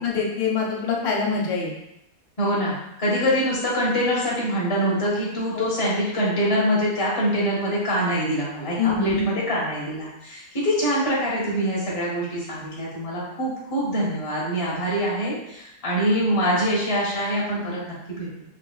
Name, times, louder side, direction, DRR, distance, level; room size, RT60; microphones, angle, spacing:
voice 1, 0.0-1.7 5.5-5.7 8.8-9.2, left 5 dB, 85° left, -2 dB, 1.5 m, -24 dB
voice 2, 2.4-18.3, equal, 25° left, -5 dB, 0.7 m, -24 dB
3.8 x 3.1 x 2.3 m, 0.84 s
omnidirectional pair, 1.9 m